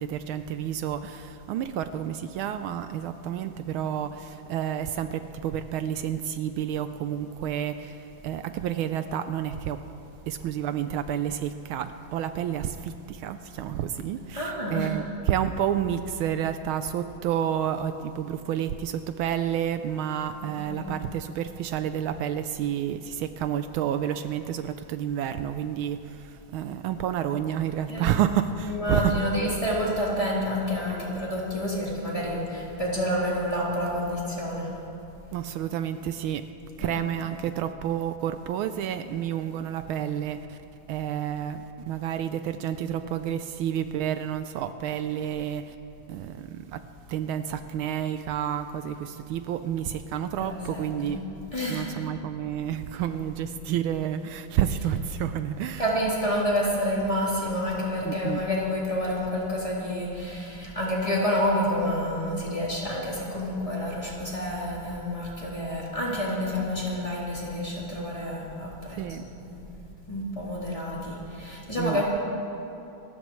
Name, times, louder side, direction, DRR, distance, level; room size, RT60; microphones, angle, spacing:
voice 1, 0.0-9.8 10.2-29.2 30.9-31.2 35.3-36.5 36.8-40.6 40.9-45.7 46.1-51.3 51.7-55.8 58.0-58.4 69.0-69.3 71.7-72.0, right 10 dB, 80° right, 10 dB, 1.4 m, -30 dB
voice 2, 14.3-14.9 20.6-20.9 27.9-28.1 28.6-34.7 36.8-37.0 50.4-51.2 51.5-51.9 55.8-69.6 70.1-72.0, equal, 15° left, -7 dB, 3.5 m, -29 dB
28.0 x 14.5 x 3.2 m, 2.8 s
omnidirectional pair, 2.3 m